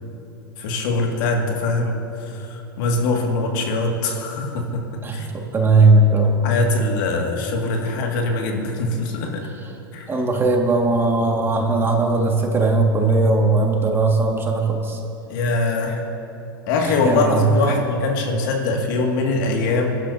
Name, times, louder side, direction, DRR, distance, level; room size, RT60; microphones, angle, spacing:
voice 1, 0.6-4.8 5.1-5.3 6.4-9.3 9.9-10.1 15.3-16.0 16.7-19.9, left 3 dB, 60° left, 1 dB, 2.2 m, -22 dB
voice 2, 5.0-6.4 10.1-15.0 16.8-17.8, right 3 dB, 20° right, 1 dB, 2.0 m, -18 dB
22.5 x 12.0 x 2.8 m, 2.9 s
hypercardioid pair, 100°, 12 cm